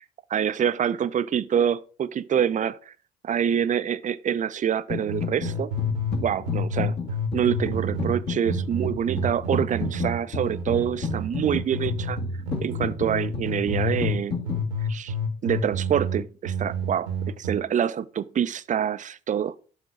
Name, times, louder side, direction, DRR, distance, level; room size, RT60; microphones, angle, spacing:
voice 1, 0.3-2.9 3.2-5.7 6.2-7.0 7.3-12.2 12.6-14.4 14.9-15.1 15.4-17.1 17.4-19.5, right 9 dB, 35° right, 0.6 m, -26 dB
sound 1, 4.9-5.5 5.8-14.6, left 3 dB, 50° left, 2.5 m, -32 dB
sound 2, 5.1-6.2 6.4-12.1 12.5-14.2 14.4-17.5, equal, 85° right, 1.3 m, -29 dB
11.5 x 3.8 x 4.9 m
figure-of-eight pair, 50°, 21 cm